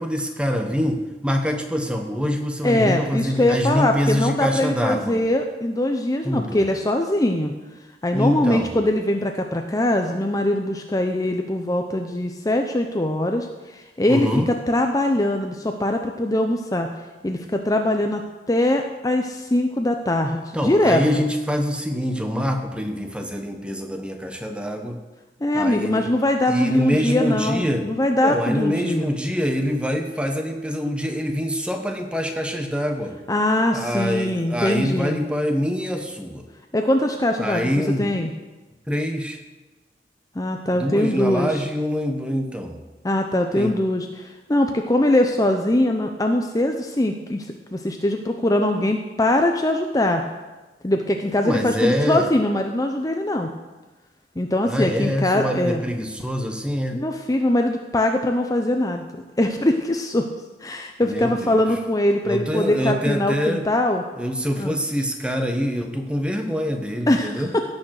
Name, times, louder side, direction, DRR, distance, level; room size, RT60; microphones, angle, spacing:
voice 1, 0.0-5.2 6.2-6.6 8.1-8.7 14.1-14.5 20.5-25.0 25.5-26.1 26.5-27.9 28.2-33.2 33.7-36.4 37.4-38.1 38.9-39.4 40.7-42.8 43.5-43.8 51.4-52.3 54.7-57.0 61.0-61.6 62.2-63.6 64.1-67.5, equal, 5° right, 4 dB, 1.2 m, -25 dB
voice 2, 2.6-7.5 8.0-16.9 17.2-18.2 18.5-21.2 25.4-29.1 33.3-35.2 36.7-38.3 40.3-41.6 43.0-47.5 47.7-50.2 50.8-53.5 54.4-55.8 56.9-59.1 59.4-60.3 60.6-64.0 64.6-64.7 67.1-67.6, left 1 dB, 20° left, 4 dB, 0.7 m, -22 dB
17.0 x 6.4 x 6.5 m, 1.2 s
head